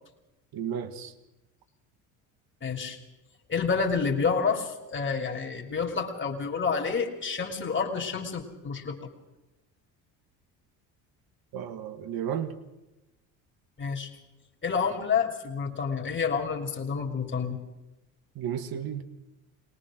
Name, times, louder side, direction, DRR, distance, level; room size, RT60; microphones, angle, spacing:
voice 1, 0.5-1.1 11.5-12.6 18.4-19.0, right 8 dB, 55° right, 10 dB, 1.9 m, -33 dB
voice 2, 2.6-3.0 3.5-9.1 13.8-14.1 14.6-17.6, left 5 dB, 25° left, 1 dB, 3.2 m, -29 dB
22.0 x 18.5 x 6.4 m, 1.0 s
supercardioid pair, 75°, 42 cm